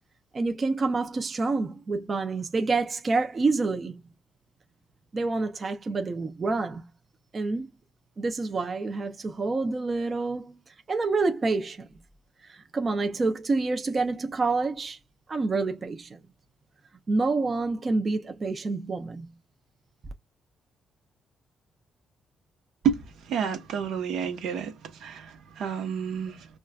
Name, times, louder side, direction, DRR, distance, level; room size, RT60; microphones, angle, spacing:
voice 1, 0.3-4.0 5.1-6.9 7.3-7.7 8.2-10.6 10.9-11.9 12.4-15.0 15.3-16.2 17.1-19.3, right 3 dB, 35° right, 0.5 m, -28 dB
voice 2, 22.8-24.7 25.0-26.5, right 7 dB, 80° right, 1.0 m, -30 dB
5.3 x 2.3 x 2.3 m
cardioid pair, 110°, 0 cm